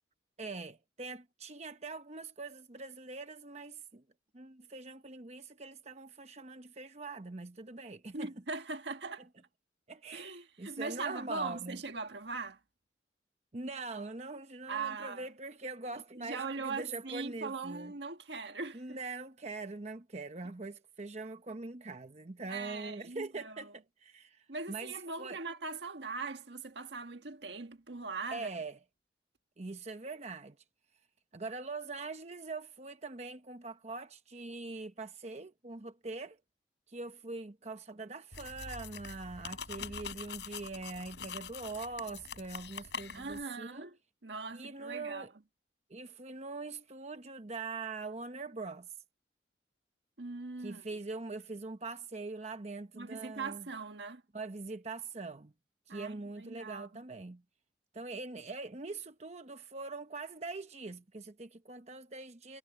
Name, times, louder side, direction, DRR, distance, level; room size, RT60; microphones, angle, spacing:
voice 1, 0.4-4.0 4.3-8.4 9.9-11.8 13.5-17.9 18.7-25.4 28.3-28.8 29.6-30.6 31.3-36.4 36.9-43.9 44.5-45.3 45.9-48.9 50.6-53.7 54.3-55.5 55.9-57.4 57.9-62.6, right 3 dB, 40° right, 0.9 m, -43 dB
voice 2, 8.1-9.3 10.1-12.6 14.7-15.3 16.2-19.0 22.5-23.7 24.5-28.5 43.1-44.0 44.2-45.3 50.2-50.8 52.9-54.2 55.9-57.0, right 4 dB, 75° right, 1.6 m, -40 dB
sound 1, 38.3-43.4, left 6 dB, 75° left, 5.2 m, -44 dB
head